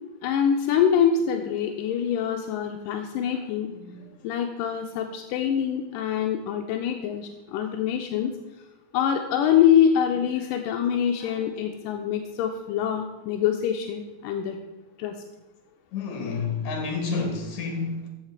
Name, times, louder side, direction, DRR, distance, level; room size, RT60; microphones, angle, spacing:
voice 1, 0.2-3.7 4.2-8.4 8.9-14.6 15.0-15.2, left 8 dB, 85° left, 4 dB, 2.3 m, -24 dB
voice 2, 3.7-4.1 11.2-11.5 15.9-18.1, left 4 dB, 60° left, 4 dB, 2.8 m, -30 dB
14.0 x 5.7 x 4.7 m, 1.0 s
omnidirectional pair, 3.9 m